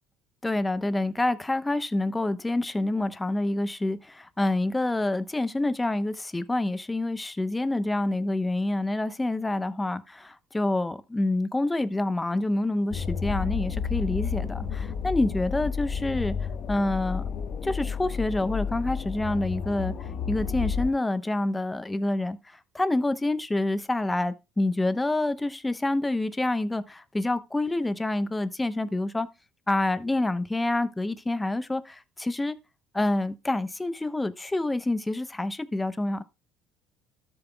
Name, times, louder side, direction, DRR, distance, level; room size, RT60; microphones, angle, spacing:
voice 1, 0.4-16.4 16.7-17.3 17.6-29.3 29.7-32.6 32.9-36.2, left 2 dB, 15° left, 0.8 m, -27 dB
sound 1, 12.9-20.9, left 6 dB, 50° left, 1.3 m, -31 dB
13.0 x 7.0 x 2.2 m
supercardioid pair, 90°, 0 cm